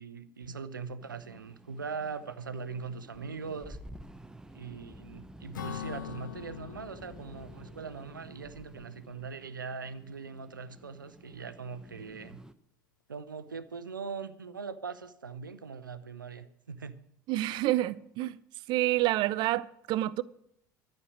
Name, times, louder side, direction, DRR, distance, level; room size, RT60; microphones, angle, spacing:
voice 1, 0.0-3.8 4.5-12.4 13.1-17.0, right 5 dB, 80° right, 0.8 m, -41 dB
sound 1, 1.0-12.5, right 1 dB, 5° right, 0.8 m, -51 dB
Acoustic guitar / Strum, 5.5-9.2, left 9 dB, 75° left, 0.6 m, -44 dB
voice 2, 17.3-18.4 18.7-20.2, right 16 dB, 45° right, 0.5 m, -28 dB
12.5 x 6.7 x 9.4 m
figure-of-eight pair, 70°, 11 cm